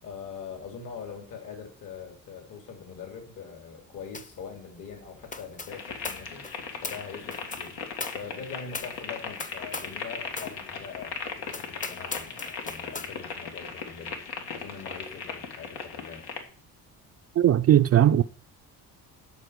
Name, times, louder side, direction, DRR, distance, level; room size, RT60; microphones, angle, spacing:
voice 1, 0.0-6.4 6.8-7.8 8.1-16.2, left 6 dB, 60° left, 3.0 m, -42 dB
sound 1, 4.1-4.4 4.7-10.0 10.3-10.6 11.0-11.1 11.5-13.1, left 3 dB, 20° left, 0.8 m, -40 dB
sound 2, 5.7-16.4, left 5 dB, 85° left, 2.1 m, -38 dB
voice 2, 17.4-18.2, right 11 dB, 40° right, 0.4 m, -18 dB
12.5 x 4.4 x 8.2 m
cardioid pair, 130°, 37 cm